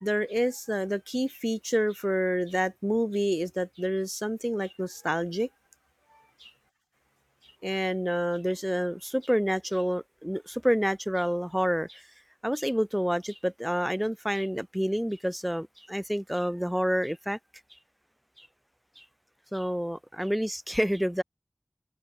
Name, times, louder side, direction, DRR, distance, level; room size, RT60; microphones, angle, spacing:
voice 1, 0.0-5.5 6.4-6.5 7.6-12.0 12.4-17.4 18.4-18.5 19.0-19.1 19.5-21.2, equal, 5° right, 1.2 m, -28 dB
wide cardioid pair, 60°, 0 cm